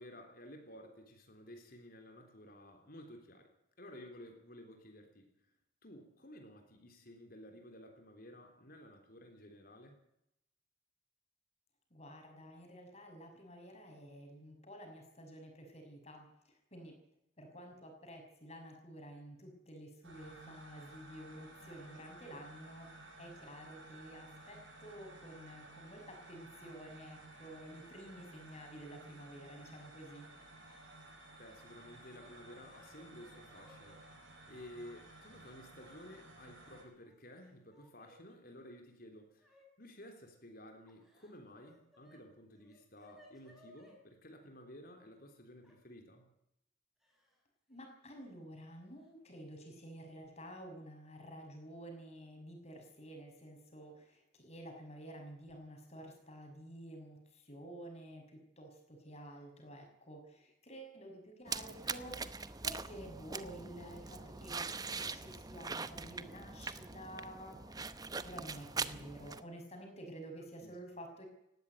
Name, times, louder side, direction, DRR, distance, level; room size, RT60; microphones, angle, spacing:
voice 1, 0.0-3.5 3.8-5.3 5.8-10.0 31.4-34.0 34.5-46.3 70.6-70.8, left 1 dB, 50° left, 4 dB, 3.8 m, -54 dB
voice 2, 11.9-16.3 16.7-16.9 17.4-22.9 23.2-30.3 47.7-68.0 68.2-71.3, right 1 dB, 35° left, 3 dB, 6.3 m, -51 dB
sound 1, 20.0-36.8, right 2 dB, 80° right, 7.6 m, -55 dB
Yell / Crying sobbing, 30.7-31.0 31.3-31.5 32.2-34.0 34.9-35.0 36.0-36.6 36.9-38.2 39.4-39.7 40.9-42.2 42.5-44.0 45.6-45.8 47.0-47.4 47.7-47.9 49.0-49.1 49.5-49.8, equal, ahead, 5.5 m, -64 dB
sound 2, 61.5-69.4, right 4 dB, 20° right, 0.8 m, -42 dB
19.0 x 16.0 x 9.3 m, 0.82 s
head